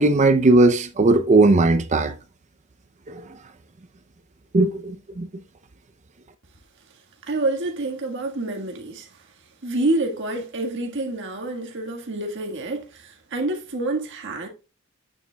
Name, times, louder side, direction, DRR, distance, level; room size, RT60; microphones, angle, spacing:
voice 1, 0.0-2.1 3.1-3.2 4.5-5.3, right 2 dB, 30° right, 0.5 m, -17 dB
voice 2, 7.2-9.2 9.6-14.5, right 2 dB, 55° right, 1.5 m, -27 dB
8.8 x 7.1 x 2.2 m
head